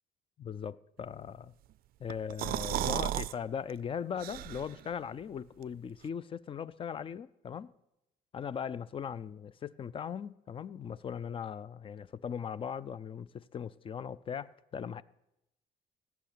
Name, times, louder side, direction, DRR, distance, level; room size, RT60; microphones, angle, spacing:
voice 1, 0.4-1.5 2.0-7.7 8.3-15.0, left 7 dB, 30° left, 0.4 m, -39 dB
sound 1, 2.1-3.3 3.7-3.8 4.2-4.9, right 14 dB, 60° right, 0.4 m, -34 dB
16.0 x 5.9 x 9.2 m
cardioid pair, 110°, 17 cm